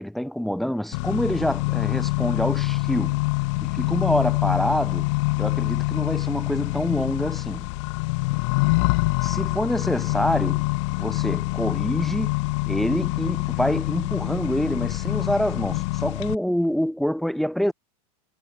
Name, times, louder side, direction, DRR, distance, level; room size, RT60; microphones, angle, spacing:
voice 1, 0.0-3.2 3.6-5.1 5.4-7.7 9.2-10.6 11.0-17.7, equal, ahead, 0.4 m, -26 dB
Accelerating revving vroom, 0.9-16.3, left 26 dB, 50° left, 1.9 m, -25 dB
supercardioid pair, 165°, 20 cm